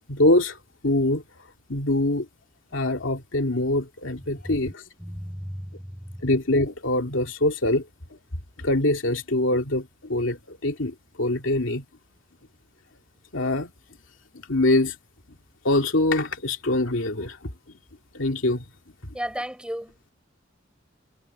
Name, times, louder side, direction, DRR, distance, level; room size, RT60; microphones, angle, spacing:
voice 1, 0.1-0.6 0.8-1.2 1.7-2.3 2.7-4.8 6.2-7.8 8.6-11.8 13.3-13.7 14.5-14.9 15.6-17.4 18.1-18.6, left 1 dB, 85° left, 2.5 m, -23 dB
voice 2, 4.2-4.7 5.0-6.4 19.1-20.0, equal, 5° right, 6.4 m, -35 dB
head